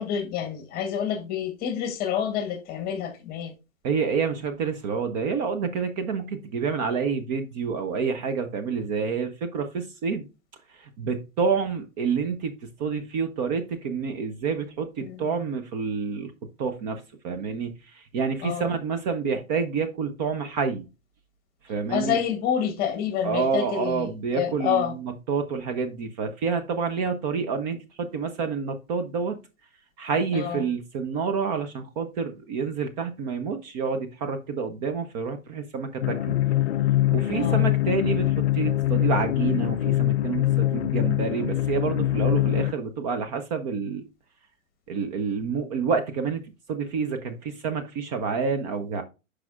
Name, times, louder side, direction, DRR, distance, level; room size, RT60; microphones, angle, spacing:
voice 1, 0.0-3.5 15.0-15.3 18.4-18.7 21.9-24.9 30.3-30.7 37.3-37.7, left 8 dB, 20° left, 1.4 m, -28 dB
voice 2, 3.8-10.3 10.7-16.3 16.6-20.9 21.6-22.2 23.2-29.4 30.0-36.4 37.1-44.1 44.9-46.4 46.7-49.0, right 5 dB, 30° right, 0.8 m, -28 dB
sound 1, 36.0-42.7, left 14 dB, 55° left, 0.4 m, -23 dB
12.0 x 4.9 x 2.4 m
figure-of-eight pair, 120°, 41 cm